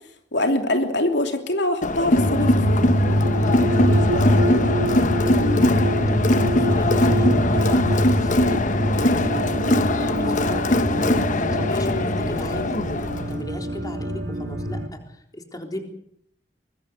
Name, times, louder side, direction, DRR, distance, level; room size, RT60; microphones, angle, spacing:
voice 1, 0.3-2.8 5.4-5.8, left 1 dB, 80° left, 5 dB, 3.0 m, -24 dB
Crowd, 1.8-13.4, left 2 dB, 45° left, 1.0 m, -22 dB
sound 1, 2.2-14.9, equal, 80° right, 3.8 m, -24 dB
voice 2, 3.9-10.8 11.1-15.8, left 1 dB, 20° left, 4 dB, 3.8 m, -37 dB
24.0 x 21.5 x 6.7 m, 0.68 s
head